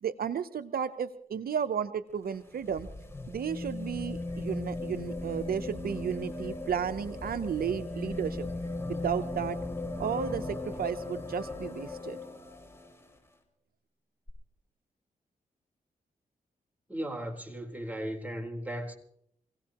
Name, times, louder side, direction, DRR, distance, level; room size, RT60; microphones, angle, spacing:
voice 1, 0.0-2.9 3.3-8.5 8.9-9.6 10.0-12.2, right 8 dB, 70° right, 0.8 m, -33 dB
sound 1, 2.1-13.1 14.3-14.4, left 2 dB, 15° left, 5.7 m, -37 dB
voice 2, 16.9-18.9, right 1 dB, 10° right, 4.0 m, -36 dB
27.0 x 17.0 x 3.0 m
cardioid pair, 50°, 16 cm